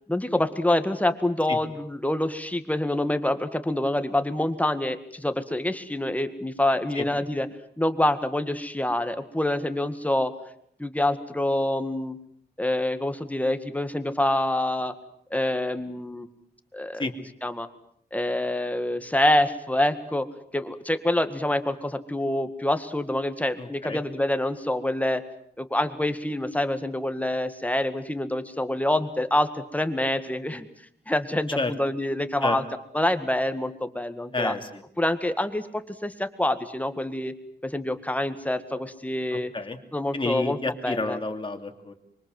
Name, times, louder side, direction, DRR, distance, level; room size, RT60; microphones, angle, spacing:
voice 1, 0.1-7.5 7.8-10.3 10.8-12.2 12.6-14.9 15.3-16.3 16.7-17.1 17.4-17.7 18.1-20.3 20.5-25.2 25.6-30.7 31.1-32.6 32.9-34.5 35.0-37.3 37.6-39.5 39.9-40.6 40.8-41.2, left 1 dB, 10° left, 9 dB, 2.0 m, -26 dB
voice 2, 23.6-24.0 31.6-31.7 32.4-32.6 34.3-34.8 39.5-39.8 40.1-41.9, left 3 dB, 30° left, 4 dB, 2.9 m, -30 dB
25.5 x 24.0 x 7.8 m, 0.68 s
wide cardioid pair, 105°, 17 cm